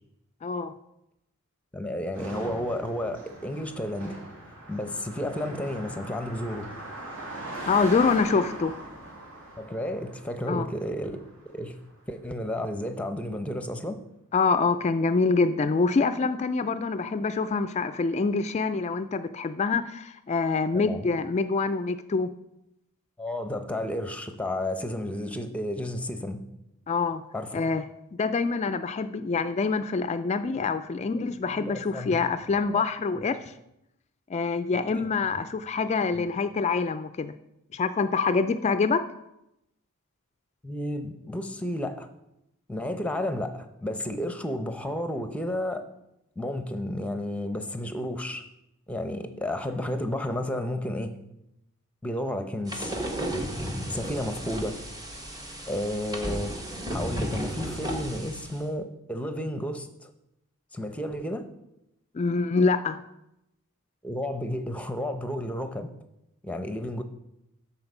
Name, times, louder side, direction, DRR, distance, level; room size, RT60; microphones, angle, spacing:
voice 1, 0.4-0.7 7.7-8.7 10.5-10.7 14.3-22.3 26.9-27.2 27.5-27.8 28.2-33.4 34.3-37.3 37.7-39.0 62.1-63.0, left 4 dB, 30° left, 11 dB, 0.3 m, -25 dB
voice 2, 1.7-4.1 4.7-6.7 9.6-11.2 11.5-11.8 12.1-14.0 20.7-21.1 23.2-26.4 27.3-27.6 31.1-31.2 31.5-32.2 32.7-32.8 35.0-35.1 36.1-36.2 40.6-42.1 42.7-45.8 46.4-48.4 48.9-51.2 52.0-52.9 53.9-54.8 55.7-56.5 56.9-60.1 60.7-61.4 64.0-65.9 66.4-67.0, left 1 dB, 5° left, 8 dB, 0.7 m, -32 dB
Car passing by, 2.1-11.7, right 1 dB, 65° right, 2.7 m, -40 dB
sound 1, 52.7-58.6, right 1 dB, 15° right, 1.2 m, -34 dB
13.0 x 4.3 x 5.4 m, 0.86 s
head